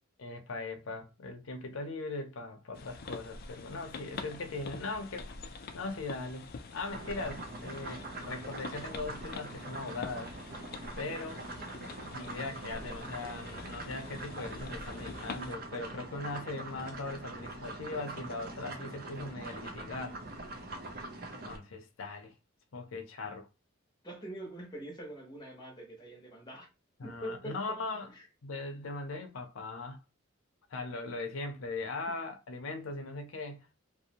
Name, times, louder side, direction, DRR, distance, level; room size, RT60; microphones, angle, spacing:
voice 1, 0.2-5.3 5.7-10.3 11.0-11.4 12.1-20.2 21.4-22.3 22.7-23.5 27.0-28.1 28.4-30.0 30.7-33.7, left 3 dB, 90° left, 0.6 m, -39 dB
sound 1, 2.7-15.6, left 4 dB, 50° left, 0.4 m, -46 dB
sound 2, 6.9-21.6, right 2 dB, 50° right, 0.5 m, -43 dB
voice 2, 24.0-26.7 27.0-28.3 30.9-31.0 32.1-32.2, equal, 20° left, 0.7 m, -44 dB
2.6 x 2.0 x 2.8 m
head